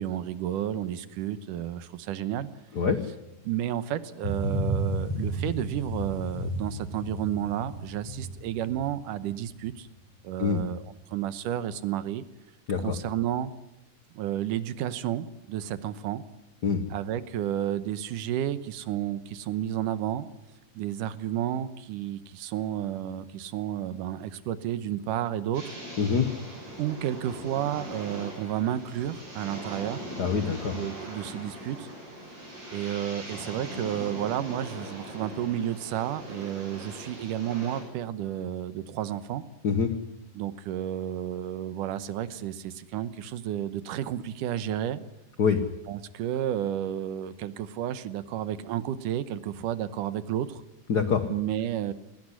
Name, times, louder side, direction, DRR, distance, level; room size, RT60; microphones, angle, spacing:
voice 1, 0.0-2.5 3.4-9.9 10.2-10.8 11.1-12.2 12.8-13.5 14.1-16.2 16.9-20.3 20.8-25.6 26.8-30.0 30.7-31.9 32.7-39.4 40.3-45.0 45.9-50.6 51.3-51.9, right 11 dB, 80° right, 14 dB, 2.5 m, -31 dB
sound 1, 4.2-9.8 10.3-10.4, right 1 dB, 45° left, 5.3 m, -32 dB
sound 2, 25.5-37.8, equal, 45° right, 8.6 m, -41 dB
voice 2, 26.0-26.3 30.2-30.8 39.6-39.9 45.4-45.6 50.9-51.3, left 6 dB, 80° left, 10 dB, 0.9 m, -25 dB
20.0 x 17.0 x 9.8 m, 0.90 s
omnidirectional pair, 3.7 m